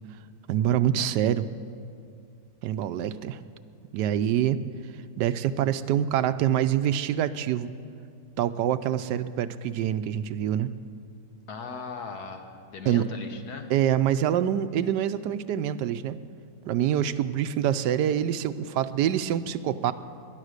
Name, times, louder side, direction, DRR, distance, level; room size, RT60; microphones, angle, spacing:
voice 1, 0.5-1.5 2.6-3.4 3.9-4.6 5.2-7.7 8.4-10.7 12.8-13.0 13.7-16.2 16.7-19.9, right 10 dB, 85° right, 12 dB, 1.2 m, -25 dB
voice 2, 11.5-13.7 19.8-19.9, left 4 dB, 65° left, 5 dB, 1.7 m, -38 dB
19.5 x 11.0 x 6.5 m, 2.4 s
omnidirectional pair, 1.8 m